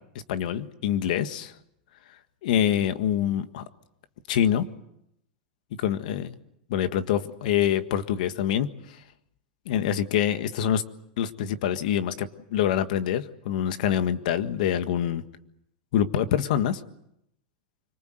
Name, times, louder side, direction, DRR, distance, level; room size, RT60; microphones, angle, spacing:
voice 1, 0.3-1.5 2.4-3.6 4.3-4.7 5.8-6.3 6.7-8.7 9.6-10.8 11.2-15.2 15.9-16.8, left 10 dB, 60° left, 10 dB, 1.7 m, -25 dB
25.5 x 24.0 x 7.9 m, 0.78 s
supercardioid pair, 170°, 5 cm